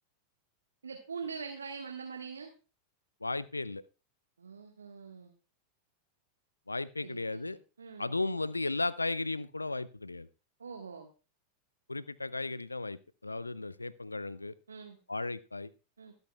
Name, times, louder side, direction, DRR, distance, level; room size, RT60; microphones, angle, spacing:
voice 1, 0.8-2.5 4.4-5.3 7.0-8.1 10.6-11.1 14.7-15.0 16.0-16.1, right 5 dB, 70° right, 3 dB, 1.5 m, -43 dB
voice 2, 3.2-3.8 6.7-7.6 8.0-10.3 11.9-14.5 15.1-15.7, left 2 dB, 80° left, 19 dB, 0.5 m, -35 dB
23.5 x 8.0 x 2.3 m, 0.33 s
figure-of-eight pair, 90°, 0 cm